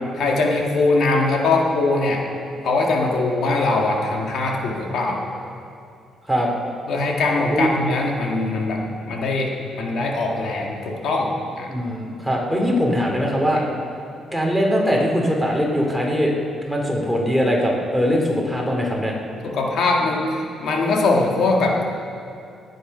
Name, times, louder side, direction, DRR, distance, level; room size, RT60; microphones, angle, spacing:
voice 1, 0.2-2.2 2.6-5.2 6.9-11.7 13.5-13.7 19.4-21.8, left 3 dB, 70° left, 0 dB, 1.9 m, -21 dB
voice 2, 11.7-13.6 14.3-16.3 16.6-19.1, equal, ahead, -1 dB, 3.0 m, -21 dB
18.5 x 9.2 x 5.5 m, 2.4 s
cardioid pair, 90°, 0 cm